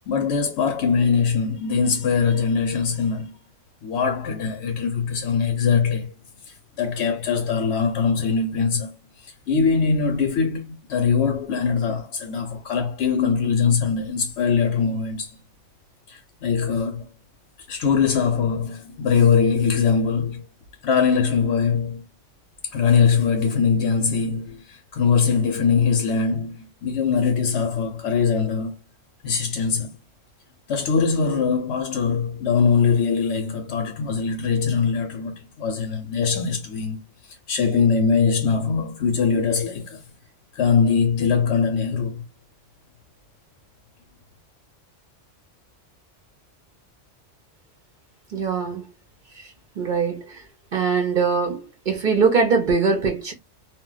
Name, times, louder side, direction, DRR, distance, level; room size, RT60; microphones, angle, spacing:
voice 1, 0.1-3.3 3.8-6.1 6.4-8.9 9.2-15.3 16.1-17.1 17.7-20.4 20.8-22.0 22.7-28.7 29.2-29.9 30.7-37.0 37.3-40.0 40.5-42.2, left 6 dB, 70° left, 0.8 m, -22 dB
voice 2, 48.3-48.8 49.8-50.2 50.7-53.3, right 5 dB, 55° right, 0.6 m, -21 dB
2.3 x 2.1 x 3.7 m
omnidirectional pair, 1.3 m